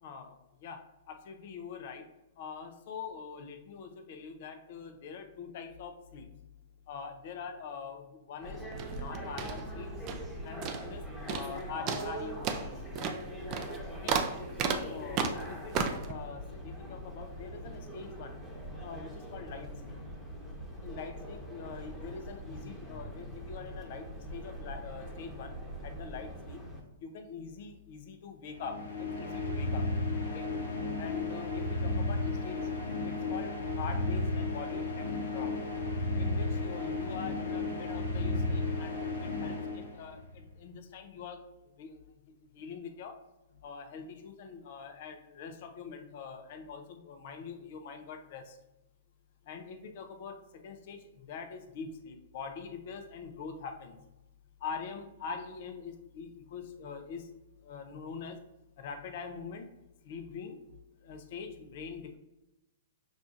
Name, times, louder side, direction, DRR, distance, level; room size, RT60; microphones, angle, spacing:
voice 1, 0.0-2.1 2.4-6.5 6.9-8.6 8.9-9.9 10.4-12.7 14.0-14.2 14.7-18.4 18.8-20.0 20.8-26.6 27.0-29.9 30.3-30.5 31.0-35.6 36.2-41.5 41.8-42.0 42.5-43.2 43.6-48.6 49.5-54.0 54.6-57.3 57.6-58.5 58.8-59.7 60.0-62.2, left 5 dB, 55° left, 6 dB, 0.6 m, -44 dB
sound 1, 8.4-26.8, equal, 5° right, 1.0 m, -42 dB
sound 2, 8.7-10.3 10.6-11.0 11.3-11.6 11.9-16.1, right 6 dB, 35° right, 0.4 m, -34 dB
sound 3, 28.5-40.4, left 2 dB, 85° left, 1.0 m, -33 dB
6.1 x 2.4 x 2.6 m, 0.94 s
hypercardioid pair, 125°, 0 cm